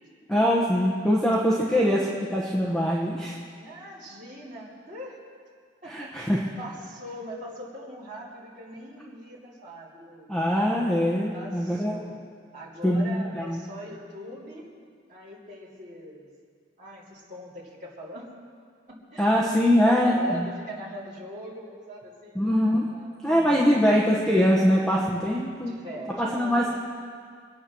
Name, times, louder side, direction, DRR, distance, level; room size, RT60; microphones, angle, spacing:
voice 1, 0.3-3.4 5.8-6.4 10.3-12.0 12.8-13.6 19.2-20.5 22.3-22.9 23.2-25.7 26.2-26.7, equal, 5° left, -5 dB, 1.2 m, -23 dB
voice 2, 1.0-2.2 3.5-5.2 5.8-6.2 6.6-10.5 11.3-12.2 12.5-14.7 15.1-16.3 16.8-18.3 18.9-22.4 22.9-24.0 25.7-26.8, equal, 40° right, -7 dB, 3.1 m, -41 dB
24.0 x 8.8 x 6.2 m, 2.1 s
head